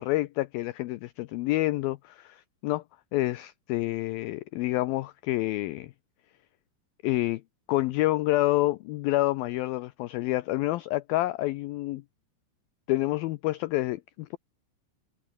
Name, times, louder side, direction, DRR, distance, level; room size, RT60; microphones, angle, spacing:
voice 1, 0.0-2.8 3.1-5.9 7.0-7.4 7.7-12.0 12.9-14.4, left 17 dB, 85° left, 2.1 m, -28 dB
omnidirectional pair, 5.0 m